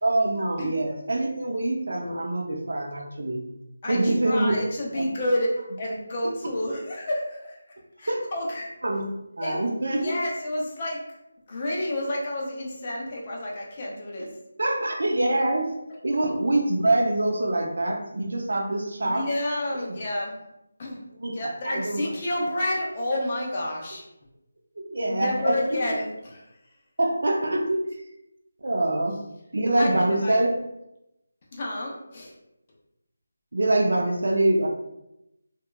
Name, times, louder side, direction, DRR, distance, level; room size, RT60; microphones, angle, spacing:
voice 1, 0.0-3.4 3.9-4.5 4.9-5.0 6.2-6.3 8.1-8.2 8.8-9.1 9.4-10.1 14.2-14.3 14.6-15.7 16.0-19.3 19.8-20.0 21.2-22.0 24.8-25.8 27.0-27.8 28.6-29.2 29.5-30.5 33.5-34.7, right 1 dB, 60° right, 1 dB, 0.5 m, -25 dB
voice 2, 3.8-7.6 8.0-8.7 9.4-11.0 11.5-14.3 19.0-20.3 20.8-21.0 21.3-24.0 25.1-26.4 29.8-30.4 31.5-32.3, left 1 dB, 20° left, -2 dB, 0.3 m, -30 dB
2.8 x 2.3 x 2.2 m, 0.87 s
figure-of-eight pair, 180°, 0 cm